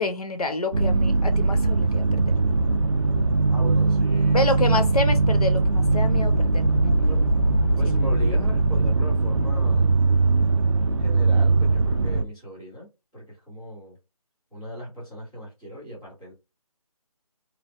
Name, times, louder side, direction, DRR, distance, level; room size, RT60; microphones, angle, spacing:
voice 1, 0.0-2.2 4.3-6.9 7.5-7.9, left 2 dB, 80° left, 0.7 m, -28 dB
sound 1, 0.7-12.2, right 3 dB, 55° right, 0.4 m, -20 dB
voice 2, 3.5-4.4 7.1-7.2 7.8-9.9 11.0-12.9 13.1-13.9 14.5-16.3, equal, 5° left, 0.9 m, -38 dB
3.1 x 2.1 x 2.5 m
figure-of-eight pair, 175°, 19 cm